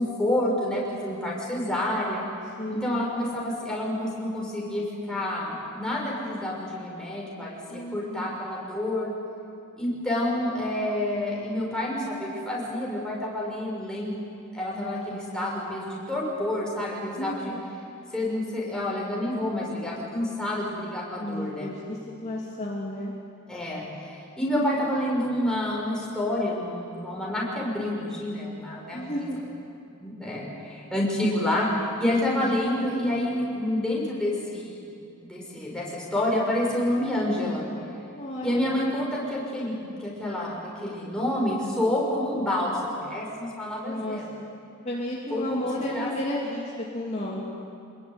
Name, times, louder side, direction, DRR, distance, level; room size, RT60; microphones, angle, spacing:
voice 1, 0.0-2.2 2.7-9.1 9.8-14.2 14.5-17.5 18.1-21.7 23.5-29.1 30.0-34.9 35.2-37.7 38.4-44.3 45.3-46.1, left 1 dB, 5° left, -4 dB, 6.7 m, -28 dB
voice 2, 2.6-3.1 7.7-8.3 14.7-15.6 17.2-17.7 21.2-23.1 28.9-29.4 32.3-32.6 38.1-38.9 43.8-44.5 44.8-47.4, left 1 dB, 35° left, -4 dB, 3.0 m, -33 dB
27.0 x 21.0 x 9.8 m, 2.5 s
head